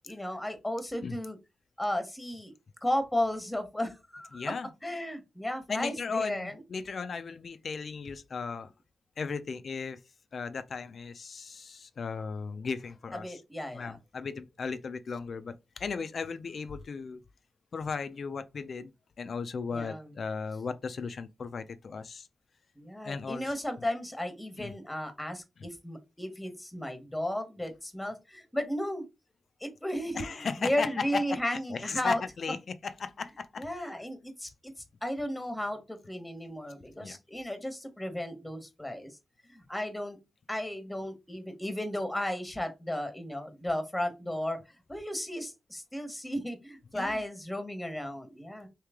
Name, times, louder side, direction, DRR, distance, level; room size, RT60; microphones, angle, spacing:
voice 1, 0.1-1.4 1.8-2.5 2.8-4.5 4.8-6.5 13.2-14.0 19.7-20.1 22.8-29.0 29.6-32.2 33.6-34.7 35.0-39.1 39.5-40.2 40.5-44.6 44.9-48.7, left 1 dB, 10° left, 1.1 m, -34 dB
voice 2, 4.3-4.7 5.7-8.7 9.2-10.0 10.3-13.4 13.7-17.2 17.7-18.9 19.2-22.3 23.0-23.5 24.6-24.7 30.1-31.4 31.7-33.9 37.0-37.2 46.9-47.2, left 5 dB, 60° left, 0.5 m, -36 dB
3.1 x 2.8 x 3.5 m
cardioid pair, 55°, 0 cm